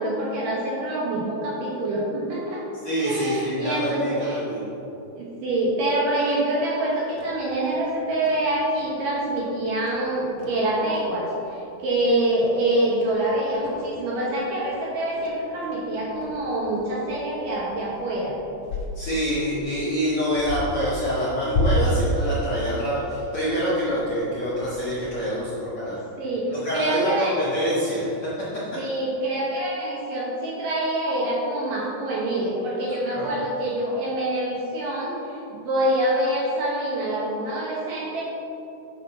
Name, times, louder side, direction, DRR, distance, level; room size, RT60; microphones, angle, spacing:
voice 1, 0.0-2.6 3.0-4.4 5.1-18.4 26.2-27.4 28.8-38.2, right 1 dB, 80° right, -5 dB, 1.9 m, -26 dB
voice 2, 2.8-4.6 18.9-26.0 26.5-28.3 33.1-33.3, equal, 55° left, -11 dB, 1.6 m, -26 dB
sound 1, 7.0-25.3, equal, 90° left, 1.6 m, -33 dB
9.9 x 5.3 x 5.6 m, 3.0 s
omnidirectional pair, 5.6 m